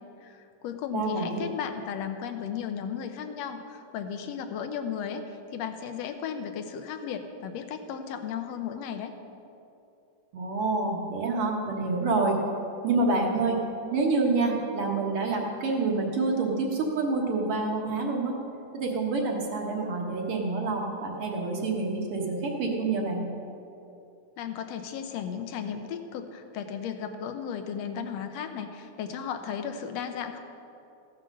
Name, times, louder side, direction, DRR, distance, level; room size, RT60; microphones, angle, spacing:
voice 1, 0.2-9.1 24.4-30.4, left 7 dB, 75° left, 8 dB, 1.6 m, -35 dB
voice 2, 0.9-1.4 10.3-12.4 12.8-13.6 13.9-18.3 18.7-23.3, right 3 dB, 55° right, 0 dB, 2.0 m, -27 dB
15.0 x 7.6 x 6.4 m, 2.7 s
omnidirectional pair, 3.5 m